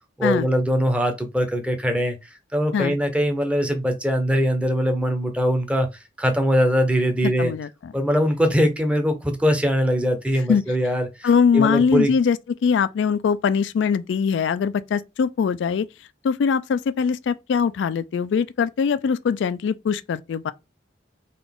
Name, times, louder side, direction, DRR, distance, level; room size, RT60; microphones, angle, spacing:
voice 1, 0.2-2.2 2.5-5.9 6.2-7.5 7.9-11.3 11.5-12.1, equal, 5° right, 0.6 m, -21 dB
voice 2, 7.4-7.9 10.5-10.6 11.2-15.9 16.2-20.5, left 6 dB, 80° left, 0.3 m, -22 dB
3.8 x 2.5 x 3.5 m
head